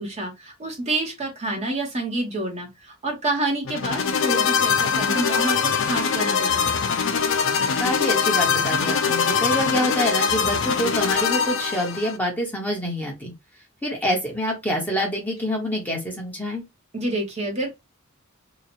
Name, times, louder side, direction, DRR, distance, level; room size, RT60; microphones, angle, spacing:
voice 1, 0.0-6.8 16.9-17.7, right 2 dB, 30° right, 1.1 m, -28 dB
sound 1, 3.6-12.2, left 6 dB, 65° left, 0.5 m, -22 dB
voice 2, 7.8-13.3 13.8-16.6, equal, 10° left, 1.2 m, -26 dB
3.0 x 2.4 x 4.2 m
head